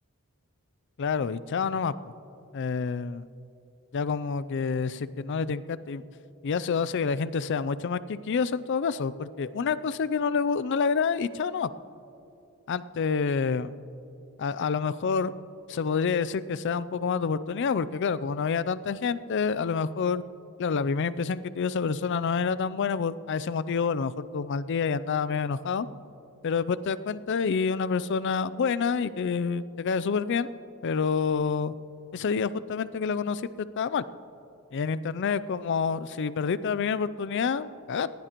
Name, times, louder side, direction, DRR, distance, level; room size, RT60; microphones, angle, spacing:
voice 1, 1.0-1.9 2.5-3.3 3.9-6.0 6.4-11.7 12.7-13.7 14.4-15.3 15.7-20.2 20.6-25.9 26.4-30.5 30.8-31.7 32.1-34.0 34.7-38.1, left 5 dB, 55° left, 16 dB, 0.4 m, -28 dB
19.5 x 16.0 x 3.0 m, 2.8 s
head